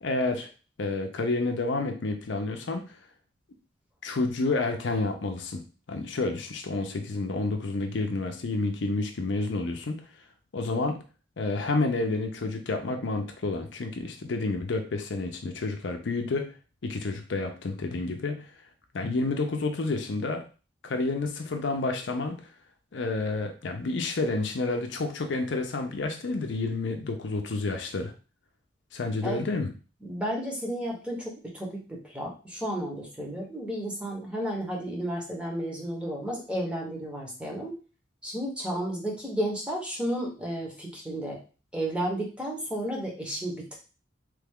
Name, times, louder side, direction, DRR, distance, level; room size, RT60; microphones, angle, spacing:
voice 1, 0.0-0.5 0.8-3.0 4.0-5.6 5.9-10.0 10.5-11.0 11.4-16.5 16.8-18.4 18.9-20.4 20.8-22.4 22.9-28.1 28.9-29.7, left 3 dB, 65° left, 5 dB, 0.5 m, -29 dB
voice 2, 30.0-37.7 38.2-41.4 41.7-43.8, right 1 dB, 5° right, -2 dB, 0.8 m, -32 dB
3.2 x 2.3 x 3.5 m, 0.34 s
head